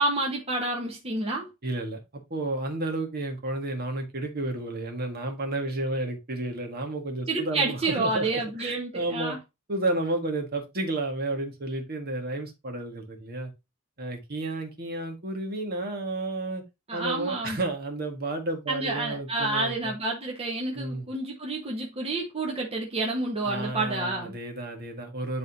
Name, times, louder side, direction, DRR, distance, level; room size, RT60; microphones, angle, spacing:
voice 1, 0.0-1.5 7.3-9.4 16.9-17.6 18.7-24.4, right 2 dB, 30° right, 1.4 m, -29 dB
voice 2, 1.6-2.0 2.3-9.4 9.7-13.5 14.0-16.6 16.9-19.9 20.8-21.1 23.4-25.4, right 2 dB, 50° right, 1.8 m, -31 dB
10.5 x 3.8 x 2.8 m
head